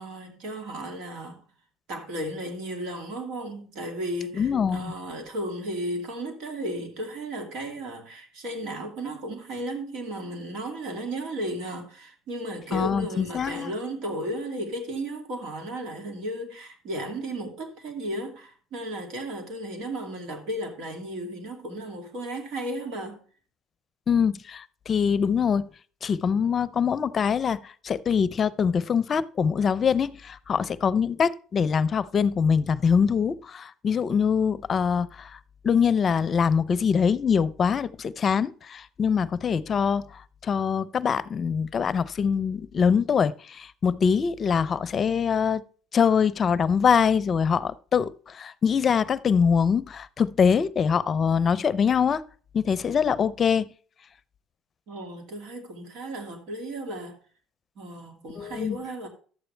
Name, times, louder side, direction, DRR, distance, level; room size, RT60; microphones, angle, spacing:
voice 1, 0.0-1.4 1.9-23.2 54.9-57.2 57.8-59.1, right 1 dB, 70° right, 2.5 m, -34 dB
voice 2, 4.4-4.9 12.7-13.7 24.1-25.7 26.0-35.4 35.6-45.6 45.9-52.2 52.5-53.7 58.4-58.8, left 6 dB, 40° left, 0.6 m, -24 dB
11.5 x 8.0 x 3.3 m
supercardioid pair, 85°, 0 cm